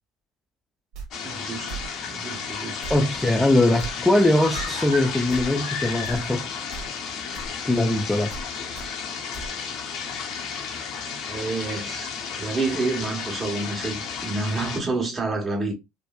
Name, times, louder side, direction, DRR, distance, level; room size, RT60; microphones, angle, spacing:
sound 1, 0.9-1.1 1.7-1.9 2.8-3.0 3.8-3.9 4.5-4.7 5.3-5.5 6.0-6.2 6.7-6.9 7.3-7.5 8.3-8.5 8.7-8.9 9.3-9.5, right 4 dB, 65° right, 1.0 m, -36 dB
sound 2, 1.1-14.8, left 6 dB, 60° left, 0.7 m, -33 dB
voice 1, 1.2-2.9 11.2-12.1 12.4-15.7, right 3 dB, 25° right, 1.3 m, -29 dB
voice 2, 2.9-6.5 7.6-8.3, left 1 dB, 10° left, 0.5 m, -21 dB
sound 3, 4.4-6.6 6.9-7.0, left 4 dB, 85° left, 1.0 m, -35 dB
3.0 x 2.0 x 2.3 m
hypercardioid pair, 75°, 0 cm